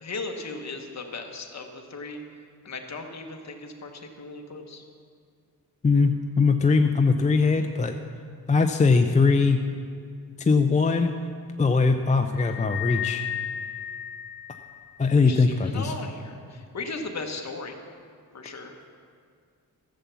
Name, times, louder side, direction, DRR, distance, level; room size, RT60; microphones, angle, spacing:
voice 1, 0.0-2.2 2.6-4.8 15.1-17.8 18.3-18.7, left 3 dB, 45° left, 3 dB, 1.2 m, -37 dB
voice 2, 5.8-7.9 8.5-9.6 10.4-11.1 11.6-13.2 15.0-15.9, left 4 dB, 20° left, 5 dB, 0.4 m, -21 dB
sound 1, 12.4-15.0, left 11 dB, 85° left, 1.1 m, -34 dB
14.0 x 7.2 x 6.9 m, 2.2 s
wide cardioid pair, 160°, 38 cm